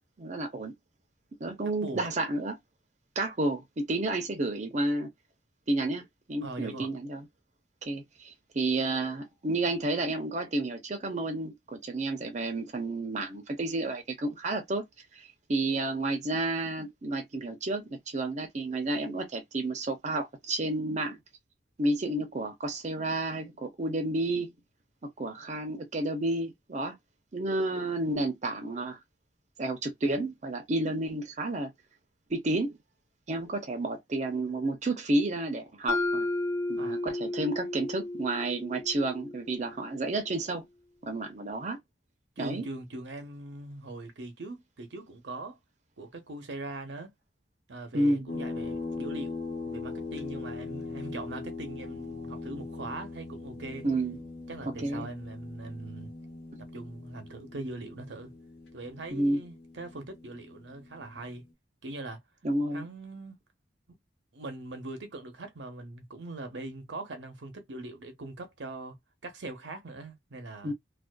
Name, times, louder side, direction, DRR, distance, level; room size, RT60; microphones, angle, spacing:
voice 1, 0.2-0.7 1.4-2.6 3.2-5.1 5.7-7.3 7.8-14.8 15.1-21.2 21.8-24.5 25.2-27.0 27.3-29.0 29.6-31.7 32.3-32.8 33.3-36.3 36.7-40.6 41.0-41.8 42.4-42.6 47.9-48.3 53.8-54.2 54.8-55.1 59.1-59.4 62.4-62.9 70.6-70.7, right 2 dB, 40° right, 0.6 m, -31 dB
voice 2, 6.4-6.9 36.8-37.0 42.4-45.6 46.0-47.1 47.7-53.9 54.5-56.1 56.6-58.3 58.7-61.4 61.8-62.2 62.7-63.4 63.9-64.0 64.3-69.0 69.2-70.7, right 2 dB, 75° right, 0.7 m, -41 dB
Mallet percussion, 35.9-39.9, left 2 dB, 15° left, 0.4 m, -33 dB
sound 1, 48.3-61.4, left 3 dB, 70° left, 1.1 m, -40 dB
2.5 x 2.3 x 2.2 m
head